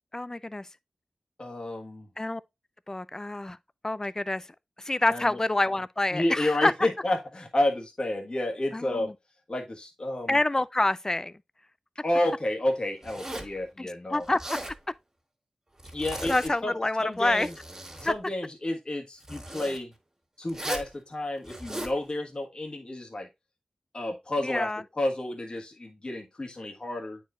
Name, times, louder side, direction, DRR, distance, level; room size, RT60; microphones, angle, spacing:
voice 1, 0.1-0.7 2.2-2.4 2.9-3.6 3.8-4.5 4.8-6.7 8.7-9.1 10.3-11.3 13.8-14.4 16.2-17.5 18.0-18.1 24.4-24.8, left 2 dB, 25° left, 0.4 m, -27 dB
voice 2, 1.4-2.1 5.1-5.3 6.1-9.1 9.5-10.4 12.0-14.3 15.9-16.7 17.0-17.5 18.0-19.9 20.4-23.3 23.9-24.7 25.0-27.2, left 1 dB, 50° left, 1.6 m, -30 dB
Zipper (clothing), 13.0-13.6 14.2-14.8 15.8-16.5 17.1-18.1 19.2-19.8 20.5-20.9 21.4-22.0, right 1 dB, 30° right, 2.1 m, -37 dB
9.2 x 4.6 x 2.5 m
cardioid pair, 50°, 2 cm